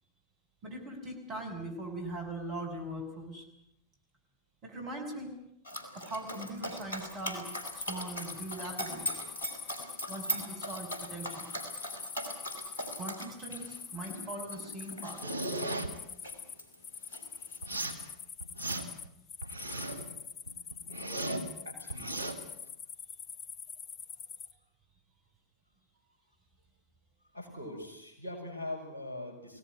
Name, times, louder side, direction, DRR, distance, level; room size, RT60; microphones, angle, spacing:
voice 1, 0.6-3.4 4.6-5.4 5.9-7.4 7.7-9.1 10.1-11.5 13.0-15.2, right 1 dB, 35° right, 3 dB, 6.6 m, -40 dB
Dog, 5.6-16.8 17.1-18.1, equal, 70° left, 4.3 m, -40 dB
sound 1, 7.4-24.5, left 7 dB, 30° left, 1.3 m, -45 dB
sound 2, 15.2-15.9 17.6-18.0 18.4-19.1 19.4-20.1 20.5-21.5 21.9-22.3, right 2 dB, 85° left, 3.0 m, -36 dB
voice 2, 21.6-22.5 25.9-26.0 27.3-29.6, left 1 dB, 80° right, 4 dB, 6.6 m, -42 dB
25.0 x 18.0 x 9.7 m, 0.77 s
figure-of-eight pair, 90°, 0 cm